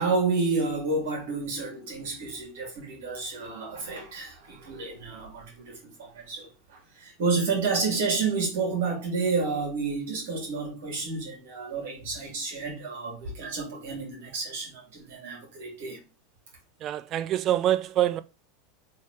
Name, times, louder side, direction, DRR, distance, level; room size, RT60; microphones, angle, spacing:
voice 1, 0.0-16.0, right 4 dB, 60° right, 2.3 m, -30 dB
voice 2, 16.8-18.2, right 12 dB, 40° right, 0.4 m, -25 dB
4.0 x 3.4 x 3.6 m
figure-of-eight pair, 80°, 0 cm